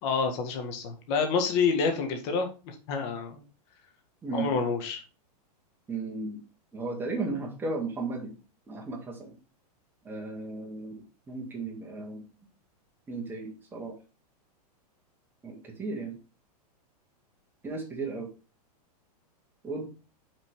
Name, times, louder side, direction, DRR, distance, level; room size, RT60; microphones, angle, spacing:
voice 1, 0.0-3.4 4.3-5.0, left 5 dB, 45° left, 5 dB, 1.8 m, -28 dB
voice 2, 5.9-6.4 6.7-8.3 8.7-9.4 10.1-10.9 11.3-12.2 13.1-13.9 15.4-16.2 17.6-18.3 19.6-19.9, right 3 dB, 10° right, -1 dB, 1.8 m, -35 dB
6.2 x 4.1 x 4.8 m, 0.33 s
supercardioid pair, 150°, 20 cm